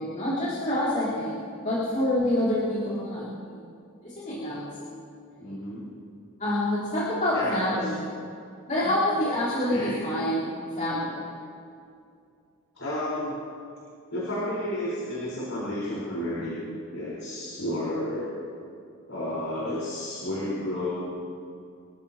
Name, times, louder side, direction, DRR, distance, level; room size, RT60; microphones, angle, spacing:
voice 1, 0.0-3.6 4.0-4.9 5.4-5.5 6.4-8.1 8.7-11.3, left 1 dB, 35° left, -11 dB, 4.2 m, -27 dB
voice 2, 5.4-5.9 7.3-7.9 8.8-8.9 9.5-10.0 12.8-13.4 14.1-16.6 16.9-18.3 19.1-21.0, left 1 dB, 70° left, -8 dB, 4.7 m, -31 dB
28.0 x 15.0 x 3.0 m, 2.4 s
head